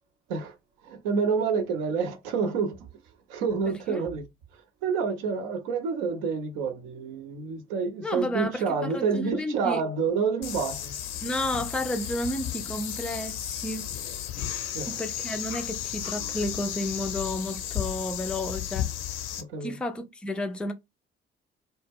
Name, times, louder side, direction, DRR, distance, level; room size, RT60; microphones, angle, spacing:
voice 1, 0.8-2.9 3.3-4.2 4.8-11.0 14.7-15.0 19.4-19.8, right 5 dB, 65° right, 0.6 m, -28 dB
voice 2, 3.7-4.0 8.0-9.8 11.2-13.9 14.9-18.9 19.6-20.7, left 1 dB, 5° left, 0.4 m, -32 dB
sound 1, 10.4-19.4, left 10 dB, 55° left, 0.6 m, -34 dB
2.1 x 2.0 x 3.3 m
figure-of-eight pair, 45°, 31 cm